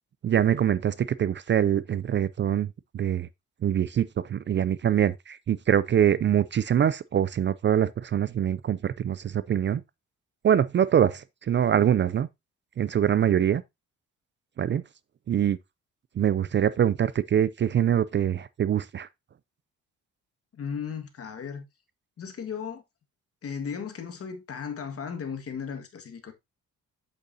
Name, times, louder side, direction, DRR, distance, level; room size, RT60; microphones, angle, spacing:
voice 1, 0.2-2.7 2.9-3.3 3.6-9.8 10.4-12.3 12.8-13.6 14.6-14.8 15.3-15.6 16.2-19.1, right 9 dB, 40° right, 0.4 m, -24 dB
voice 2, 20.5-21.6 22.2-22.8 23.4-26.3, left 6 dB, 50° left, 1.8 m, -36 dB
8.0 x 6.7 x 2.7 m
cardioid pair, 90°, 30 cm